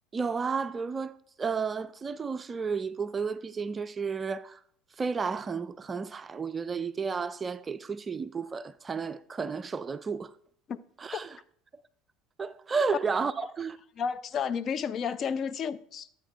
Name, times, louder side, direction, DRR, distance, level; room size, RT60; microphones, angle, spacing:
voice 1, 0.1-4.6 5.0-10.3 11.0-11.4 12.4-13.8, right 5 dB, 25° right, 0.4 m, -32 dB
voice 2, 14.0-16.1, left 6 dB, 40° left, 0.5 m, -32 dB
12.5 x 8.7 x 2.4 m
hypercardioid pair, 70°, 0 cm